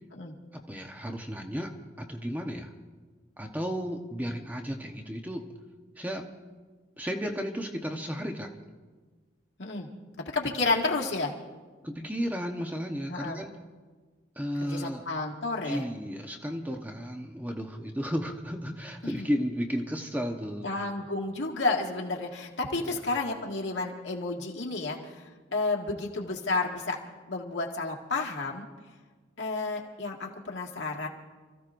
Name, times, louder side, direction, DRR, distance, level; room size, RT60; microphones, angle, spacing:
voice 1, 0.5-2.7 3.4-5.5 6.0-6.3 7.0-8.5 11.8-13.5 14.4-15.0 15.6-20.7 22.8-23.0, equal, 10° right, 2 dB, 0.9 m, -33 dB
voice 2, 10.2-11.3 13.1-13.4 14.6-15.9 19.0-19.3 20.6-27.0 27.3-28.7 29.4-31.1, left 3 dB, 75° left, -1 dB, 2.0 m, -31 dB
29.0 x 15.0 x 2.6 m, 1.4 s
head